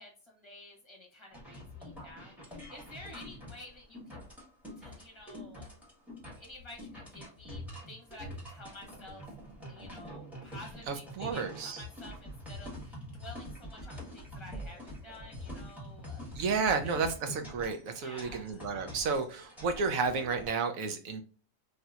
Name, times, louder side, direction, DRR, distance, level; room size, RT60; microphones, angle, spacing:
voice 1, 0.0-4.2 4.8-5.8 6.3-9.2 9.7-16.3 16.7-17.1 18.0-18.6, left 1 dB, 25° left, -1 dB, 1.1 m, -51 dB
sound 1, 1.3-20.5, equal, ahead, 1.3 m, -45 dB
voice 2, 10.9-11.8 16.3-21.2, right 5 dB, 85° right, 7 dB, 1.1 m, -32 dB
3.2 x 2.8 x 2.4 m, 0.37 s
omnidirectional pair, 1.4 m